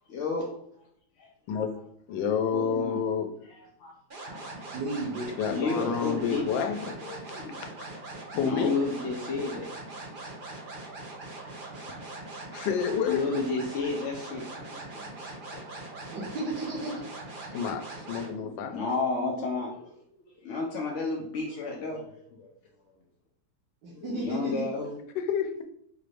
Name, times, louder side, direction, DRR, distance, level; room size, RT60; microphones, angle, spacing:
voice 1, 0.1-0.6 1.2-1.3 2.5-3.0 3.4-3.9 4.2-4.6 5.5-6.4 7.0-7.6 8.4-9.7 13.1-15.2 15.5-15.6 18.4-19.9 20.2-22.5 23.9-24.9, left 3 dB, 70° left, -1 dB, 0.7 m, -32 dB
voice 2, 2.1-3.3 5.4-7.0 7.6-7.7 8.3-8.7 12.5-13.3 17.5-18.8 25.1-25.6, left 7 dB, 90° left, 6 dB, 1.3 m, -29 dB
sound 1, 4.1-18.3, right 2 dB, 45° right, 0.7 m, -41 dB
voice 3, 4.7-5.3 16.1-17.0 23.8-24.6, right 2 dB, 80° right, -5 dB, 1.5 m, -33 dB
4.8 x 2.5 x 3.2 m, 0.70 s
omnidirectional pair, 1.9 m